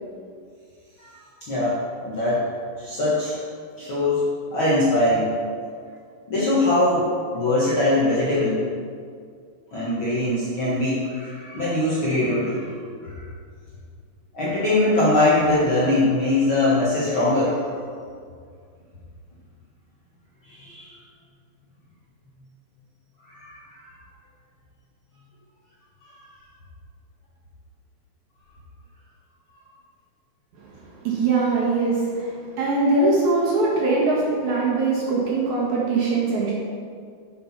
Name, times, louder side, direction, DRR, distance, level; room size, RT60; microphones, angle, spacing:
voice 1, 1.0-1.8 2.0-2.4 2.8-3.4 3.8-4.2 4.5-5.3 6.3-7.1 7.3-8.6 9.7-12.7 13.0-13.2 14.3-17.6 20.4-21.0 23.3-23.8 26.0-26.1, left 2 dB, 50° left, -9 dB, 1.7 m, -22 dB
voice 2, 30.9-36.5, right 3 dB, 55° right, -5 dB, 2.6 m, -22 dB
7.8 x 6.6 x 5.8 m, 2.2 s
omnidirectional pair, 4.4 m